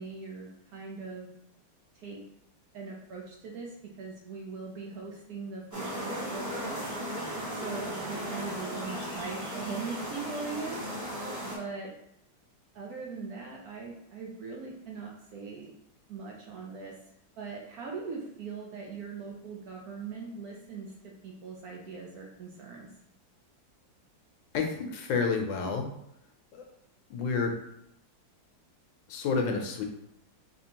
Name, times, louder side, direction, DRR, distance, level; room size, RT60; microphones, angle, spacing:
voice 1, 0.0-1.3 1.9-2.2 2.7-6.8 7.5-10.8 11.4-11.9 12.7-15.7 16.1-17.0 17.4-22.9, right 4 dB, 70° right, -1 dB, 0.9 m, -40 dB
sound 1, 5.7-11.6, equal, 15° right, 0.6 m, -36 dB
voice 2, 24.5-25.9 26.5-26.6 27.1-27.5 29.1-29.8, left 5 dB, 85° left, 3 dB, 1.3 m, -29 dB
4.2 x 2.8 x 2.9 m, 0.77 s
omnidirectional pair, 2.0 m